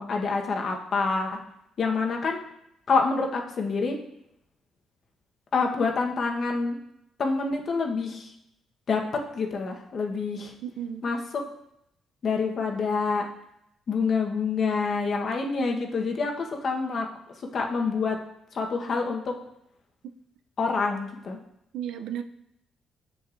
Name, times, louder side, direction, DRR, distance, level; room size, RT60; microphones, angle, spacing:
voice 1, 0.0-1.4 1.8-2.4 2.9-4.0 5.5-6.8 7.2-8.3 8.9-10.5 11.0-11.2 12.2-13.3 13.9-17.1 17.4-18.2 18.5-19.3 20.6-21.4, left 4 dB, 55° left, 2 dB, 1.0 m, -27 dB
voice 2, 10.6-11.0 20.0-20.1 21.7-22.2, right 9 dB, 85° right, 8 dB, 0.4 m, -34 dB
7.4 x 6.5 x 2.5 m, 0.80 s
cardioid pair, 90°, 0 cm